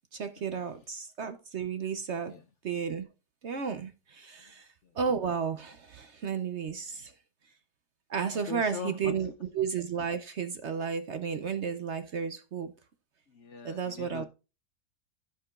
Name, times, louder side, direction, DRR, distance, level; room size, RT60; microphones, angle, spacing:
voice 1, 0.1-2.3 2.6-3.1 3.4-4.7 4.9-7.1 8.1-12.7 13.6-14.3, right 6 dB, 55° right, 0.9 m, -33 dB
voice 2, 8.5-9.1 13.3-14.3, left 7 dB, 60° left, 0.8 m, -40 dB
15.5 x 5.9 x 2.4 m
omnidirectional pair, 1.7 m